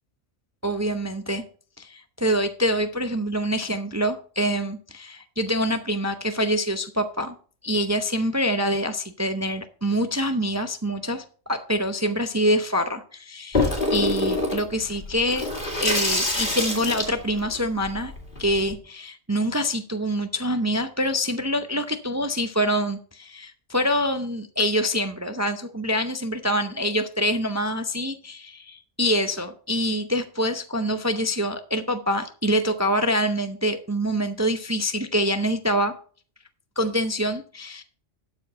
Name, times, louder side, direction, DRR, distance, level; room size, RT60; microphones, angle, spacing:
voice 1, 0.6-1.4 1.8-7.3 7.6-15.5 15.8-18.1 18.4-35.9 36.8-37.8, equal, 20° right, 8 dB, 0.4 m, -25 dB
Water tap faucet / Sink (filling or washing), 13.5-18.7, left 2 dB, 40° left, 2.6 m, -26 dB
12.0 x 4.8 x 5.4 m, 0.42 s
omnidirectional pair, 1.3 m